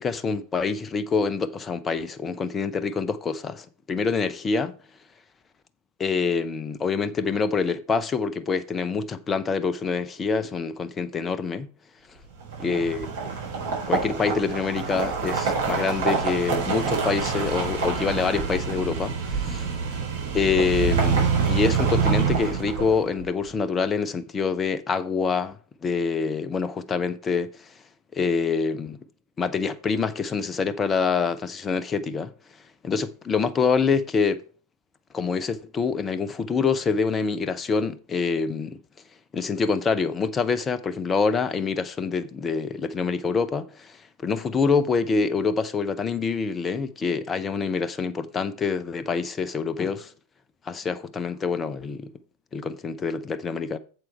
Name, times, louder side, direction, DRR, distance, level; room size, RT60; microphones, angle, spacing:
voice 1, 0.0-4.7 6.0-11.7 12.6-13.1 13.7-19.7 20.3-27.7 28.1-29.0 29.4-32.3 32.8-34.4 35.1-38.8 39.3-44.0 44.2-50.1 50.7-52.1 52.5-53.8, left 5 dB, 20° left, 0.7 m, -26 dB
sound 1, 12.4-23.2, right 5 dB, 60° right, 4.1 m, -26 dB
7.7 x 7.5 x 4.3 m
figure-of-eight pair, 90°, 0 cm